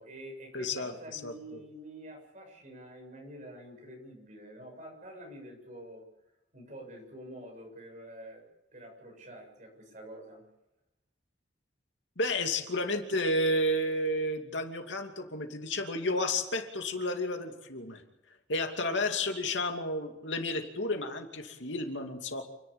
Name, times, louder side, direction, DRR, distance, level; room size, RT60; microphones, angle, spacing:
voice 1, 0.0-6.0 6.5-8.4 8.7-10.4, equal, 45° right, 1 dB, 7.4 m, -47 dB
voice 2, 0.5-1.6 12.2-18.0 18.5-22.6, left 1 dB, 85° left, 4 dB, 2.6 m, -32 dB
29.0 x 11.0 x 8.8 m, 0.90 s
head